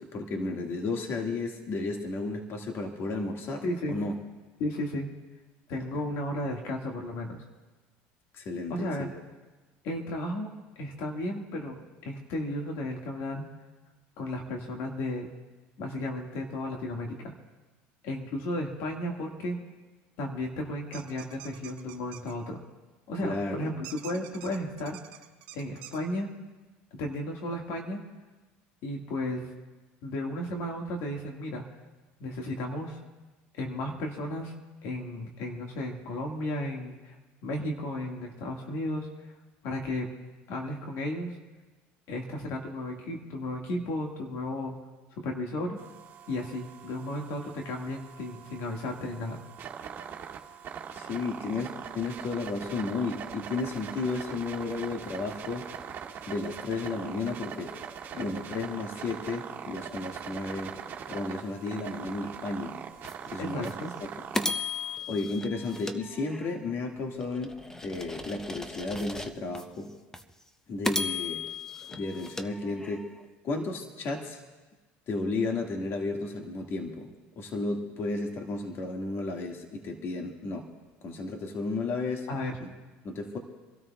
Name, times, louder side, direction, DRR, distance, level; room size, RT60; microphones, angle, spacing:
voice 1, 0.0-4.1 8.3-9.1 23.2-23.7 50.9-55.7 56.3-57.7 58.2-60.7 61.1-62.7 63.3-63.7 64.0-64.1 65.1-69.9 70.7-71.4 71.9-73.1 73.4-74.4 75.1-77.1 77.4-80.7 81.0-82.3 82.6-82.7 83.0-83.4, left 3 dB, 50° left, 2 dB, 1.8 m, -33 dB
voice 2, 3.6-4.0 4.6-5.1 5.7-7.4 8.7-9.1 9.8-10.5 10.8-13.5 14.2-15.3 15.8-17.3 18.0-19.6 20.2-22.6 23.1-25.0 25.5-26.3 26.9-28.0 28.8-29.5 30.0-31.7 32.2-33.0 33.5-34.5 34.8-37.1 37.4-39.3 39.6-40.1 40.5-41.3 42.1-44.8 45.1-45.8 46.3-49.4 58.1-58.3 63.4-63.9 82.3-82.6, left 1 dB, 70° left, 1 dB, 1.8 m, -34 dB
sound 1, 20.9-22.3 23.8-26.0, right 13 dB, 80° right, 1.0 m, -46 dB
sound 2, 45.8-65.0, right 8 dB, 45° right, 1.8 m, -42 dB
sound 3, 63.0-63.1 63.6-63.7 64.3-66.7 67.2-69.6 70.1-70.2 70.8-73.2, left 3 dB, 10° left, 0.7 m, -35 dB
28.5 x 13.0 x 2.3 m, 1.2 s
supercardioid pair, 100°, 5 cm